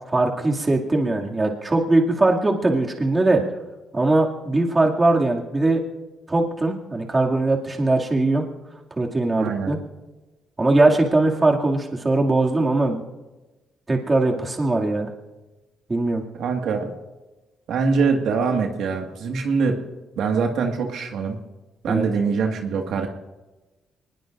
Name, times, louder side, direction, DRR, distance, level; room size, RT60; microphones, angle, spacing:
voice 1, 0.1-3.4 3.9-5.8 6.3-8.4 9.0-9.8 10.6-13.0 13.9-15.1 15.9-16.2 21.9-22.1, right 2 dB, 25° right, 0 dB, 2.4 m, -20 dB
voice 2, 9.3-9.7 16.3-16.9 17.7-19.8 20.2-21.4 21.8-23.1, right 5 dB, 75° right, 2 dB, 1.8 m, -23 dB
23.5 x 20.5 x 2.6 m, 1.1 s
cardioid pair, 90°, 0 cm